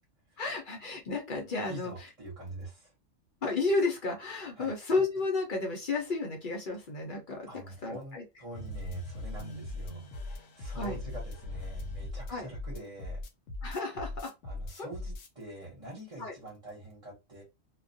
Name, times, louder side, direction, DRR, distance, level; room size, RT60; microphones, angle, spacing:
voice 1, 0.4-1.9 3.4-8.2 10.7-11.0 12.3-12.5 13.6-14.3 14.8-14.9 16.2-16.3, left 3 dB, 50° left, 2 dB, 0.7 m, -32 dB
voice 2, 1.7-2.9 4.6-4.7 7.5-13.2 14.5-17.4, right 1 dB, 35° right, -2 dB, 1.0 m, -45 dB
sound 1, 8.5-15.3, left 2 dB, 85° left, 1.0 m, -39 dB
2.3 x 2.1 x 2.6 m, 0.24 s
omnidirectional pair, 1.3 m